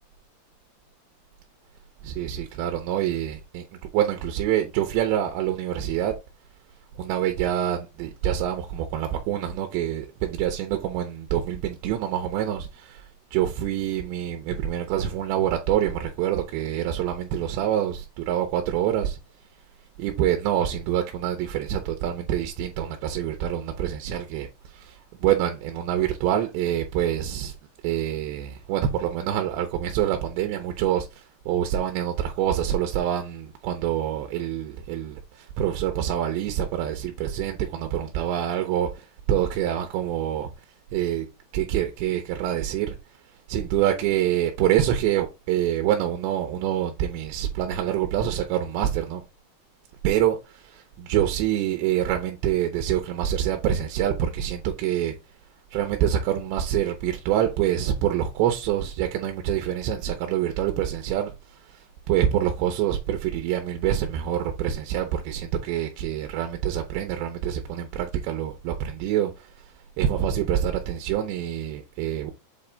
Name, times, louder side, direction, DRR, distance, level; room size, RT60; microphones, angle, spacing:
voice 1, 2.0-3.6 3.9-6.1 7.0-19.2 20.0-27.6 27.8-40.7 40.9-41.3 41.5-49.2 50.0-55.2 55.7-72.3, right 10 dB, 80° right, 3.0 m, -26 dB
7.8 x 3.3 x 3.8 m
omnidirectional pair, 5.1 m